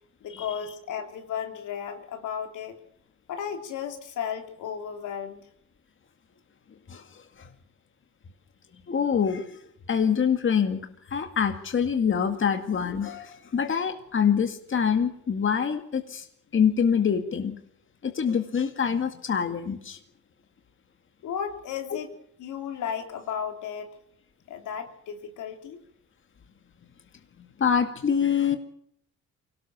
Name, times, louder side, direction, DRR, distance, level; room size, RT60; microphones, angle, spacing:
voice 1, 0.2-2.8 3.3-5.4 21.2-22.1 22.4-23.9 24.5-25.8, left 8 dB, 80° left, 4 dB, 3.4 m, -34 dB
voice 2, 6.9-7.5 8.9-9.6 9.9-16.3 16.5-17.6 18.0-20.0 27.6-28.6, left 7 dB, 40° left, 6 dB, 2.1 m, -25 dB
24.0 x 18.0 x 7.1 m, 0.69 s
cardioid pair, 90°, 30 cm